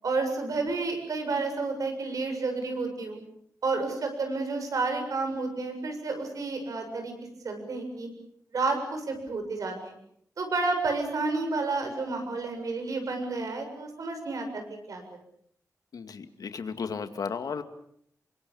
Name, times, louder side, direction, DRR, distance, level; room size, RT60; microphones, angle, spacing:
voice 1, 0.0-3.2 3.6-7.1 7.4-8.1 8.5-9.9 10.4-14.6 14.9-15.0, right 3 dB, 65° right, 5 dB, 7.4 m, -30 dB
voice 2, 15.9-17.6, left 5 dB, 85° left, 8 dB, 2.3 m, -34 dB
29.0 x 24.5 x 7.2 m, 0.67 s
wide cardioid pair, 175°, 6 cm